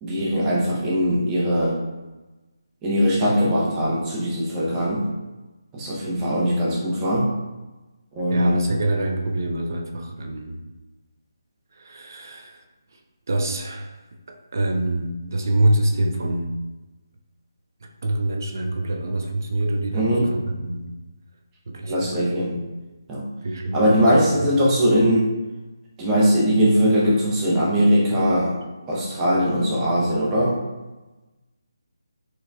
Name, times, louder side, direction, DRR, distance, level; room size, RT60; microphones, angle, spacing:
voice 1, 0.0-1.8 2.8-5.1 5.7-7.3 8.1-8.6 19.9-20.3 21.9-22.6 23.1-23.3 23.7-25.3 26.0-28.5 28.9-30.6, equal, 15° right, -6 dB, 0.7 m, -20 dB
voice 2, 8.3-10.6 11.7-12.6 13.3-13.9 14.3-16.5 18.0-20.9 21.7-22.6 23.4-24.4, right 1 dB, 50° right, 2 dB, 0.4 m, -25 dB
4.5 x 2.3 x 2.2 m, 1.1 s
figure-of-eight pair, 150°, 2 cm